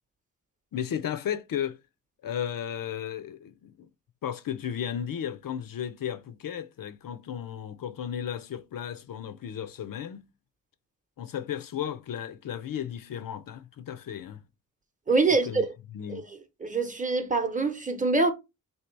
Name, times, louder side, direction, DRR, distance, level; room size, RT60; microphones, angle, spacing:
voice 1, 0.7-1.8 2.2-3.9 4.2-10.3 11.2-14.4 15.3-15.6 15.9-16.3, left 9 dB, 90° left, 0.6 m, -34 dB
voice 2, 15.1-15.7 16.1-16.2 16.6-18.3, right 3 dB, 25° right, 0.7 m, -24 dB
3.6 x 2.7 x 4.5 m
wide cardioid pair, 175°, 33 cm